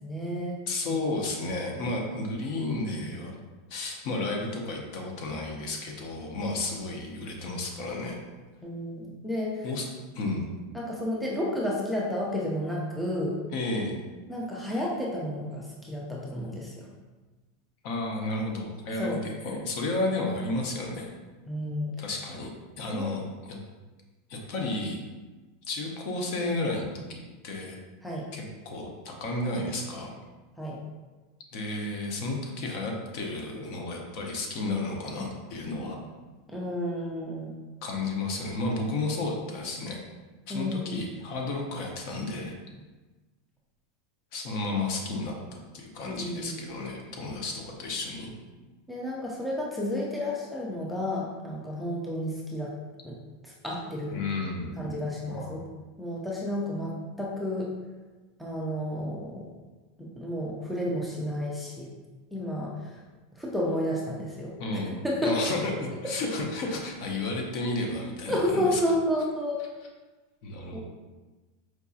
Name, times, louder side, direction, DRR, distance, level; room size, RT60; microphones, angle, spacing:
voice 1, 0.0-0.6 0.9-1.0 8.6-9.7 10.7-13.4 14.3-16.7 19.0-19.2 21.5-22.0 22.9-23.1 28.0-28.2 30.6-30.8 36.5-37.5 40.5-41.1 46.0-46.6 48.9-52.7 53.0-53.2 53.4-54.3 54.8-55.6 56.0-57.7 58.4-59.5 60.2-61.9 62.3-62.9 63.4-64.5 65.0-65.5 68.3-69.6 70.7-70.8, left 1 dB, ahead, -5 dB, 0.4 m, -31 dB
voice 2, 0.7-3.4 3.7-8.2 9.6-9.8 10.1-10.4 13.5-14.0 17.8-21.1 22.0-23.6 24.3-25.0 25.7-27.0 27.4-27.8 28.3-30.1 31.5-36.0 37.8-40.0 40.5-42.6 44.3-45.4 45.7-48.3 54.1-55.0 55.3-55.5 64.6-65.0 65.2-68.8 70.4-70.8, left 2 dB, 45° left, 1 dB, 0.6 m, -32 dB
4.5 x 2.6 x 2.4 m, 1.2 s
supercardioid pair, 160°, 0 cm